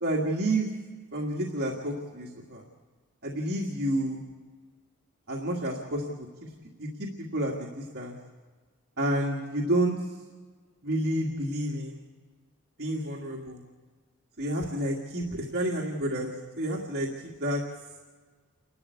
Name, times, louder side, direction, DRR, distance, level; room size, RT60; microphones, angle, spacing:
voice 1, 0.0-0.7 1.1-2.6 3.2-4.2 5.3-6.3 6.8-8.2 9.0-9.9 10.8-12.0 12.8-13.6 14.4-17.6, right 1 dB, 50° right, -1 dB, 2.0 m, -30 dB
29.0 x 12.5 x 8.3 m, 1.5 s
head